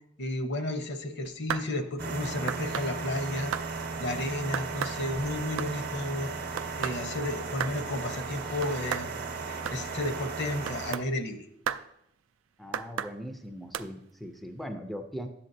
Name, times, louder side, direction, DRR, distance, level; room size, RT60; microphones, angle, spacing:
voice 1, 0.2-3.5 4.0-6.3 6.8-9.1 9.4-11.5, left 1 dB, 60° left, 6 dB, 0.8 m, -32 dB
sound 1, 1.3-1.7 2.5-2.9 3.5-3.7 4.5-5.0 5.3-5.7 6.6-7.0 7.6-7.8 8.6-9.1 9.7-9.8 10.7-11.1 11.7-11.9 12.7-13.1 13.7-13.9, right 8 dB, 85° right, 0.4 m, -33 dB
sound 2, 2.0-11.0, right 4 dB, 50° right, 0.8 m, -36 dB
voice 2, 12.6-15.3, equal, ahead, 5 dB, 0.4 m, -39 dB
10.5 x 7.5 x 2.7 m, 0.78 s
head